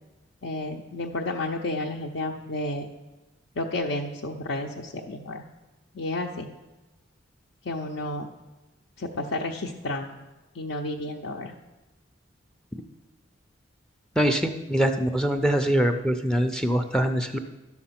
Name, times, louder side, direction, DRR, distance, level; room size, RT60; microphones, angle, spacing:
voice 1, 0.4-2.9 3.6-5.4 5.9-6.5 7.7-8.3 9.0-10.1 10.5-11.5, left 2 dB, 65° left, 0 dB, 0.6 m, -31 dB
voice 2, 14.2-17.4, equal, 5° left, 7 dB, 0.4 m, -23 dB
12.0 x 5.9 x 5.8 m, 1.1 s
head